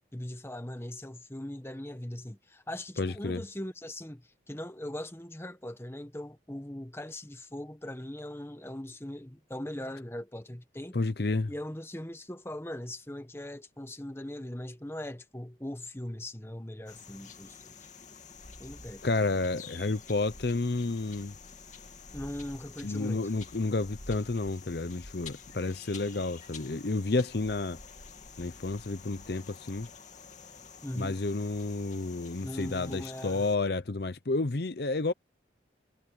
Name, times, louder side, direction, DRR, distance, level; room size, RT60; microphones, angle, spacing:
voice 1, 0.1-11.0 11.5-17.9 18.6-19.0 22.1-23.3 30.8-31.2 32.4-33.5, left 1 dB, 15° left, 1.3 m, -40 dB
voice 2, 3.0-3.4 10.9-11.5 19.0-21.3 22.8-27.8 28.4-29.9 31.0-35.1, left 3 dB, 60° left, 0.8 m, -30 dB
sound 1, 16.9-33.6, left 5 dB, 40° left, 2.8 m, -49 dB
head